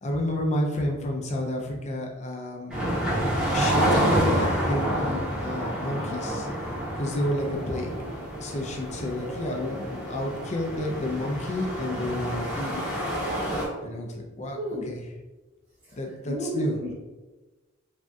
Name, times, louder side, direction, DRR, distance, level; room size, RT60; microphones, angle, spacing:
voice 1, 0.0-3.0 3.5-6.5 6.9-7.9 8.4-12.9 13.8-14.6 14.9-15.0 16.0-16.8, left 1 dB, 35° left, 1 dB, 0.5 m, -30 dB
sound 1, 2.7-13.6, right 1 dB, 5° right, 0.8 m, -28 dB
voice 2, 14.5-14.9 15.8-16.9, equal, 35° right, -10 dB, 0.8 m, -32 dB
3.3 x 2.6 x 2.3 m, 1.2 s
head